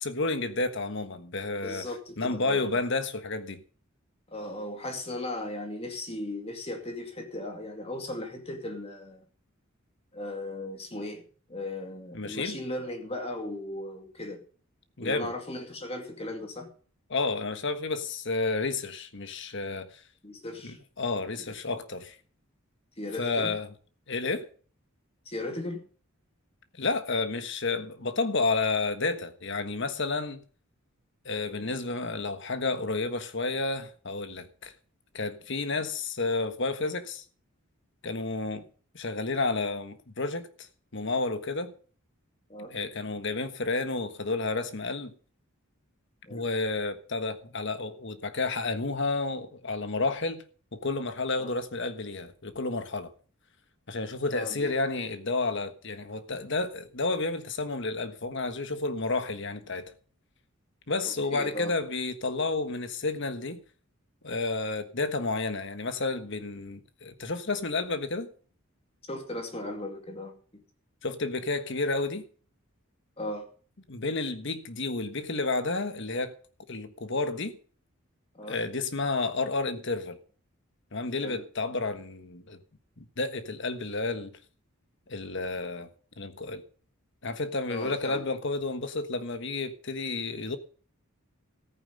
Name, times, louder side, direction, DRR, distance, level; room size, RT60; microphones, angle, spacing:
voice 1, 0.0-1.9 2.2-3.6 12.1-12.6 15.0-15.3 17.1-20.0 20.6-22.2 23.2-23.7 24.1-24.5 26.8-30.4 31.2-34.7 35.1-37.2 38.0-38.6 38.9-40.7 40.9-41.7 42.7-45.1 46.3-50.4 50.7-53.1 53.9-59.9 60.9-63.6 64.2-68.3 71.0-72.3 73.9-76.3 76.7-77.6 78.5-80.2 80.9-82.6 83.0-84.3 85.1-85.9 86.2-86.6 87.2-90.6, left 3 dB, 55° left, 1.4 m, -31 dB
voice 2, 1.6-2.8 4.3-9.3 10.1-11.2 11.5-14.4 15.0-16.7 20.2-20.8 23.0-23.6 25.3-25.8 31.4-31.7 42.5-42.7 46.3-46.4 51.4-51.5 54.3-54.7 61.0-61.8 69.1-70.6 73.2-73.5 78.3-78.6 81.2-81.4 87.7-88.2, left 1 dB, 30° left, 2.5 m, -37 dB
14.0 x 9.3 x 5.5 m
head